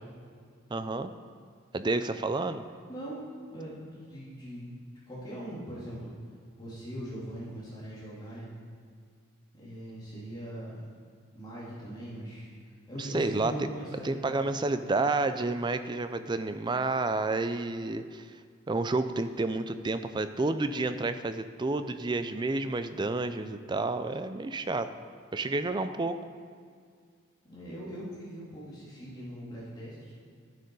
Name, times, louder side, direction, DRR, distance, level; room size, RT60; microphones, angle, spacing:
voice 1, 0.7-1.1 1.7-2.6 13.0-13.7 14.0-18.3 18.7-24.9 25.3-26.2, right 3 dB, 20° right, 10 dB, 0.4 m, -30 dB
voice 2, 2.9-4.7 5.1-6.1 6.6-8.5 9.5-10.8 11.3-12.5 12.9-14.5 27.5-30.1, right 1 dB, 20° left, -9 dB, 2.6 m, -41 dB
12.0 x 7.7 x 5.3 m, 2.1 s
head